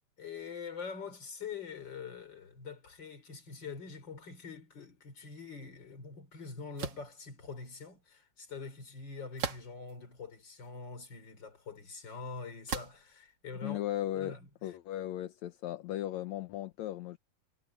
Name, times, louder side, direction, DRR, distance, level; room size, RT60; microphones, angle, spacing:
voice 1, 0.2-13.8 14.1-14.8, left 5 dB, 35° left, 4.2 m, -44 dB
sound 1, 6.8-7.1 9.4-9.9 10.6-10.7 12.7-13.1, right 5 dB, 40° right, 2.1 m, -37 dB
voice 2, 13.6-14.4 14.6-17.2, left 13 dB, 75° left, 2.1 m, -36 dB
omnidirectional pair, 3.4 m